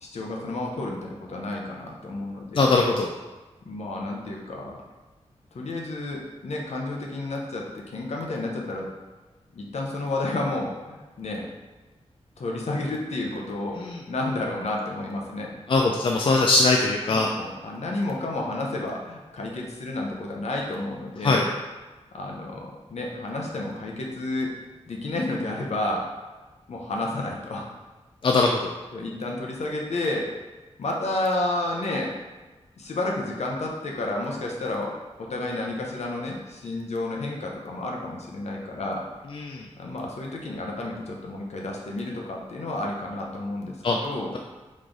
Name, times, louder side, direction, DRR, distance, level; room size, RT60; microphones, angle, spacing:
voice 1, 0.0-2.7 3.6-4.8 5.5-8.9 9.5-11.5 12.4-13.8 14.1-15.6 17.1-21.5 22.1-24.5 24.9-26.4 26.7-27.7 28.9-30.3 30.8-32.2 32.8-39.1 39.8-44.3, left 2 dB, 70° left, 0 dB, 0.8 m, -31 dB
voice 2, 2.5-3.1 13.8-14.0 15.7-17.3 21.2-21.5 28.2-28.7 39.3-39.7 43.8-44.0, left 3 dB, 50° left, 1 dB, 0.4 m, -21 dB
3.6 x 3.2 x 3.9 m, 1.2 s
wide cardioid pair, 95°, 12 cm